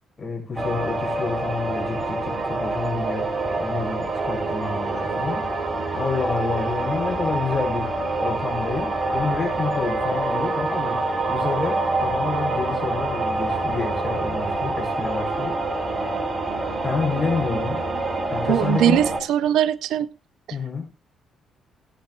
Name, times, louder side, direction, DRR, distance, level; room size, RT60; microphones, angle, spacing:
voice 1, 0.2-3.3 3.6-7.9 8.2-11.0 11.3-15.9 16.8-17.8 18.3-19.0 20.5-20.8, left 4 dB, 30° left, 7.3 m, -28 dB
sound 1, 0.6-19.2, right 2 dB, 30° right, 2.3 m, -26 dB
voice 2, 18.5-20.1 20.5-20.6, right 11 dB, 65° right, 0.4 m, -21 dB
18.0 x 10.0 x 2.3 m
figure-of-eight pair, 40°, 0 cm